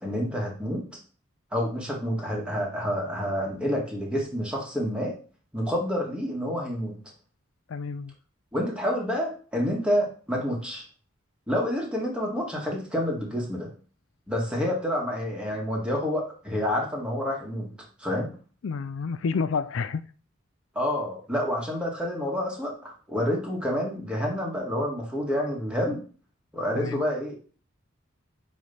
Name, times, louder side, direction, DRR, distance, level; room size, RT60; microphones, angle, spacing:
voice 1, 0.0-0.9 1.5-5.1 5.5-7.0 8.5-10.8 11.5-13.7 14.3-17.7 18.0-18.3 20.8-26.1 26.5-27.4, equal, 5° right, 1.9 m, -28 dB
voice 2, 7.7-8.1 18.6-20.1 26.8-27.0, left 5 dB, 70° left, 0.4 m, -29 dB
9.1 x 3.3 x 5.6 m
head